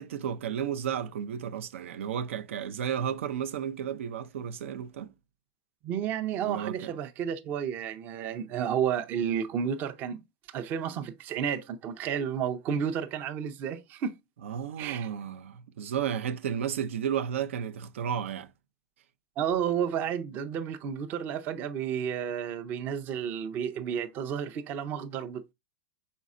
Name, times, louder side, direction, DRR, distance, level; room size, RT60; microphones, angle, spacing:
voice 1, 0.0-5.1 6.4-6.9 14.4-18.5, right 8 dB, 85° right, 0.5 m, -33 dB
voice 2, 5.8-10.2 10.5-14.2 14.8-15.1 19.4-25.5, right 8 dB, 30° right, 0.5 m, -31 dB
5.3 x 4.1 x 2.4 m
supercardioid pair, 160°, 7 cm